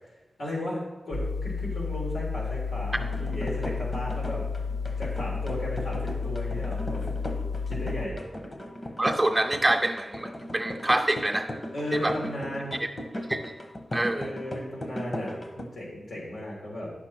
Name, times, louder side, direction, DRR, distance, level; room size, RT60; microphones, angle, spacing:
voice 1, 0.4-4.4 5.0-7.1 7.7-8.2 11.7-12.7 14.1-16.9, left 1 dB, 80° left, -5 dB, 3.5 m, -35 dB
sound 1, 1.1-8.1, left 5 dB, 60° left, 1.1 m, -32 dB
sound 2, 2.9-15.7, equal, 35° left, 0.9 m, -37 dB
voice 2, 9.0-11.6 11.9-12.1 13.3-13.4 13.9-14.3, right 1 dB, 10° right, 4 dB, 0.3 m, -26 dB
10.5 x 6.2 x 4.4 m, 1.1 s
wide cardioid pair, 145°, 0 cm